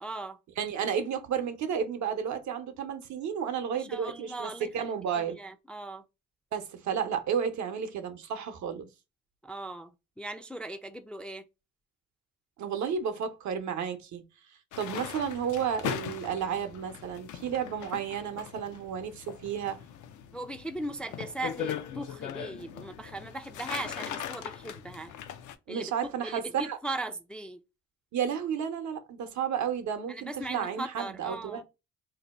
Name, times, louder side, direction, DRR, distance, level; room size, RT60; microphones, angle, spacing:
voice 1, 0.0-0.4 3.7-6.0 9.4-11.4 14.8-15.1 20.3-25.1 25.7-27.6 30.1-31.6, right 2 dB, 5° left, 0.3 m, -39 dB
voice 2, 0.6-5.4 6.5-8.9 12.6-14.2 14.8-19.8 25.7-26.8 28.1-31.6, right 7 dB, 70° right, 0.8 m, -32 dB
sound 1, 14.7-25.6, left 9 dB, 80° left, 0.5 m, -40 dB
2.7 x 2.2 x 4.1 m
cardioid pair, 90°, 30 cm